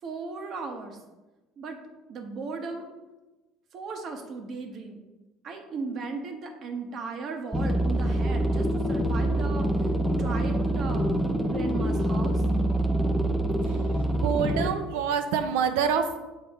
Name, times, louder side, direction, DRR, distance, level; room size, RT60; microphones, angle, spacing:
voice 1, 0.0-1.0 1.6-1.8 2.1-2.9 3.7-5.0 5.4-9.7 10.1-11.2 11.5-12.4, right 4 dB, 50° right, 4 dB, 1.0 m, -36 dB
sound 1, 7.5-14.7, right 1 dB, ahead, 0.6 m, -25 dB
voice 2, 13.6-16.2, right 7 dB, 85° right, 8 dB, 0.6 m, -27 dB
6.9 x 4.4 x 3.6 m, 1.1 s
supercardioid pair, 95°, 0 cm